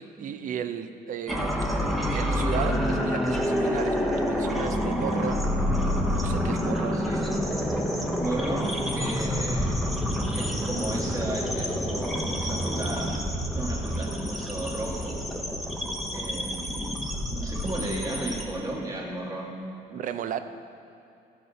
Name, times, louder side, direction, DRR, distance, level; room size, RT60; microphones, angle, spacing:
voice 1, 0.0-1.6 2.1-7.3 19.9-20.4, right 8 dB, 50° right, 10 dB, 0.5 m, -35 dB
sound 1, 1.3-18.4, equal, ahead, 0.9 m, -28 dB
voice 2, 6.9-7.2 8.2-9.9 10.2-13.2 13.5-15.2 16.1-17.0 17.3-19.6, right 1 dB, 20° right, -3 dB, 1.7 m, -34 dB
14.5 x 5.1 x 4.1 m, 2.6 s
cardioid pair, 110°, 17 cm